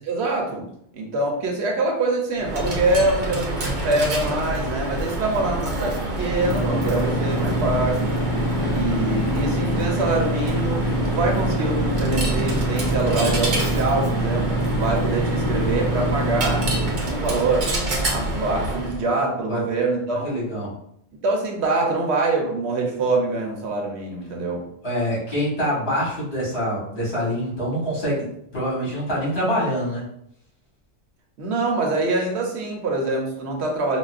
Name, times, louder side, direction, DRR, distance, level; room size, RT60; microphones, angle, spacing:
voice 1, 0.0-0.7 0.9-8.1 8.7-16.6 17.0-17.7 18.1-20.3 21.2-24.6 31.4-34.0, right 2 dB, 75° right, 0 dB, 1.1 m, -24 dB
Coin (dropping), 2.4-19.0, right 1 dB, 50° right, 0.8 m, -26 dB
sound 1, 6.4-16.9, right 1 dB, 35° left, 0.3 m, -26 dB
voice 2, 20.2-20.7 24.8-28.3 28.5-30.0, equal, 70° left, -6 dB, 1.9 m, -25 dB
5.2 x 2.2 x 2.5 m, 0.71 s
omnidirectional pair, 1.1 m